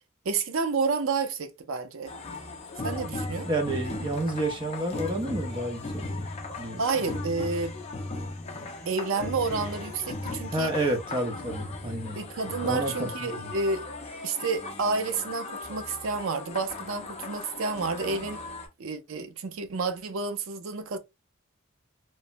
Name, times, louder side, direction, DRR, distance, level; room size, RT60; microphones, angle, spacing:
voice 1, 0.2-2.1 2.8-3.5 6.8-7.8 8.9-10.7 12.2-13.9 14.2-18.4 18.8-21.0, right 4 dB, 75° right, 0.5 m, -30 dB
sound 1, 2.1-18.7, left 2 dB, 30° left, 0.5 m, -37 dB
voice 2, 3.4-6.3 6.6-6.8 8.5-8.9 10.5-12.2 12.6-13.5, right 1 dB, 20° right, 0.5 m, -30 dB
3.1 x 2.1 x 2.4 m
head